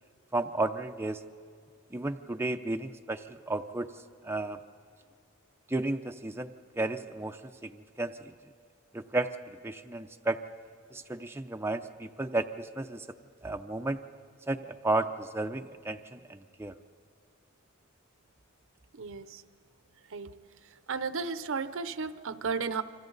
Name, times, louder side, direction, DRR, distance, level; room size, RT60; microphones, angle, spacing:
voice 1, 0.3-1.2 1.9-3.9 4.2-4.6 5.7-6.5 6.8-8.1 8.9-9.3 9.6-10.4 10.9-13.1 13.4-14.0 14.5-16.7, right 2 dB, 10° right, 5 dB, 0.5 m, -33 dB
voice 2, 18.9-19.4 20.1-20.4 20.9-22.8, right 5 dB, 65° right, 12 dB, 0.7 m, -34 dB
28.5 x 24.5 x 4.0 m, 2.2 s
head